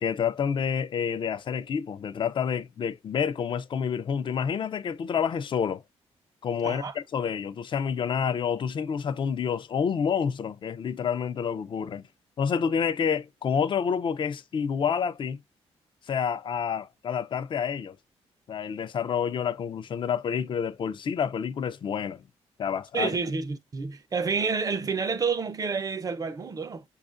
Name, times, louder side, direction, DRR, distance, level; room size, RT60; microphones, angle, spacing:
voice 1, 0.0-5.8 6.4-12.0 12.4-15.4 16.1-18.0 18.5-22.2 22.6-23.1, left 7 dB, 45° left, 0.5 m, -28 dB
voice 2, 22.9-26.8, right 5 dB, 35° right, 0.5 m, -29 dB
4.8 x 2.4 x 2.4 m
cardioid pair, 110°, 11 cm